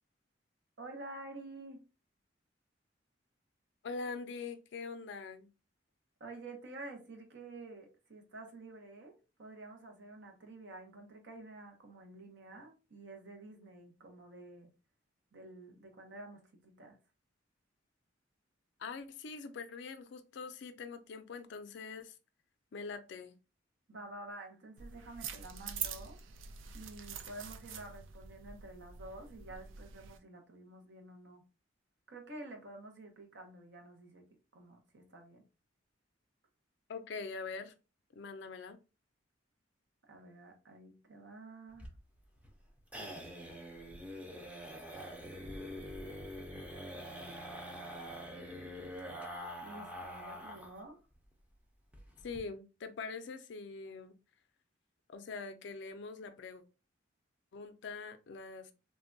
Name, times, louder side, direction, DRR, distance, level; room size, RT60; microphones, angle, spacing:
voice 1, 0.8-1.8 6.2-14.7 15.3-17.0 23.9-26.2 26.7-31.4 32.1-34.2 34.5-35.4 40.1-41.9 49.6-51.0, right 2 dB, 65° right, 0.8 m, -50 dB
voice 2, 3.8-5.5 18.8-22.1 22.7-23.3 36.9-37.7 38.2-38.8 52.2-54.2 55.1-56.6 57.5-58.7, left 4 dB, 65° left, 0.4 m, -43 dB
sound 1, 24.8-30.2, right 7 dB, 85° right, 0.4 m, -45 dB
sound 2, 41.7-50.8 51.1-51.2 51.5-51.6 51.9-52.4, equal, 5° right, 0.5 m, -45 dB
3.3 x 2.2 x 2.5 m
head